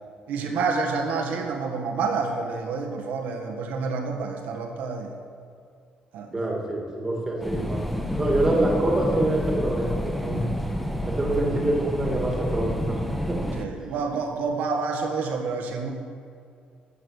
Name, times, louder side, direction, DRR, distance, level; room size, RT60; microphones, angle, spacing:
voice 1, 0.3-5.1 6.1-6.5 10.3-10.4 13.5-15.9, right 4 dB, 85° right, 2 dB, 1.7 m, -28 dB
voice 2, 6.3-7.9 8.2-10.5 11.0-13.0 13.3-13.4, right 1 dB, 15° right, -1 dB, 2.3 m, -25 dB
sound 1, 7.4-13.7, equal, ahead, 0.8 m, -29 dB
12.5 x 8.6 x 6.5 m, 2.4 s
cardioid pair, 150°, 3 cm